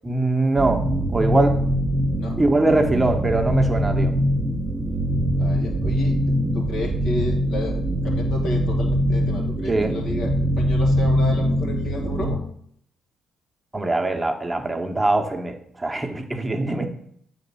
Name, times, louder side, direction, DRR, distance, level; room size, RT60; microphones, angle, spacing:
voice 1, 0.0-1.6 2.4-4.1 9.7-9.9 13.7-16.9, right 2 dB, 15° right, 4 dB, 1.1 m, -22 dB
sound 1, 0.6-12.4, equal, 35° right, 1.2 m, -23 dB
voice 2, 5.4-12.4, left 1 dB, 70° left, 0 dB, 1.8 m, -32 dB
7.7 x 4.2 x 5.5 m, 0.66 s
hypercardioid pair, 50°, 0 cm